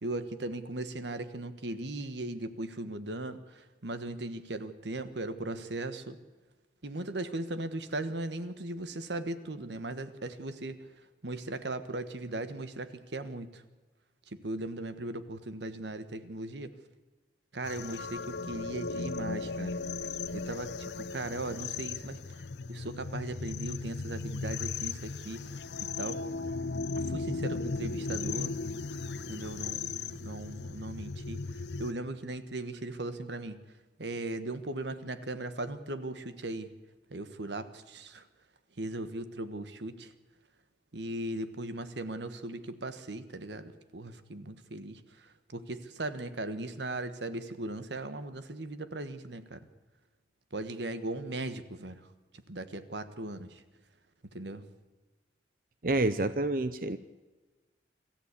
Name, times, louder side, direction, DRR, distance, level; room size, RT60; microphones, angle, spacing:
voice 1, 0.0-6.2 6.8-10.9 11.2-13.6 14.3-16.7 17.5-19.8 20.3-22.2 22.7-26.2 26.9-28.6 29.3-33.6 34.0-36.7 37.1-38.3 38.8-40.1 40.9-49.7 50.5-52.1 52.5-53.6 54.3-54.6, right 2 dB, 85° right, 11 dB, 1.4 m, -38 dB
sound 1, 17.6-31.9, left 4 dB, 80° left, 0.8 m, -36 dB
voice 2, 55.8-57.0, right 2 dB, 55° right, 12 dB, 0.7 m, -28 dB
26.0 x 14.0 x 8.4 m, 1.3 s
head